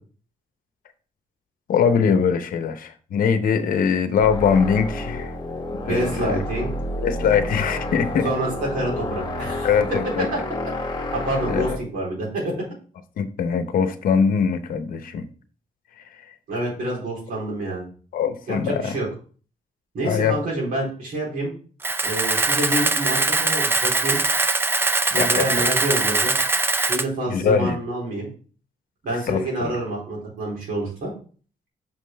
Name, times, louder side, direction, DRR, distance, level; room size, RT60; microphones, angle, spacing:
voice 1, 1.7-5.3 5.9-6.4 7.0-8.3 9.6-10.3 11.5-11.8 13.2-15.3 16.1-16.2 18.1-19.0 20.0-20.4 25.1-25.6 27.3-27.8 29.3-29.8, left 6 dB, 75° left, 9 dB, 0.8 m, -22 dB
sound 1, 4.2-11.8, left 1 dB, 30° left, 1.1 m, -30 dB
voice 2, 5.8-6.7 8.2-9.7 11.2-12.5 16.5-17.8 18.5-19.1 19.9-21.5 22.0-24.2 25.1-26.3 26.8-28.3 29.0-31.1, right 1 dB, 85° right, -3 dB, 3.7 m, -27 dB
Camera, 21.8-27.0, right 3 dB, 15° right, 0.4 m, -22 dB
6.0 x 5.5 x 3.3 m, 0.40 s
wide cardioid pair, 150°, 14 cm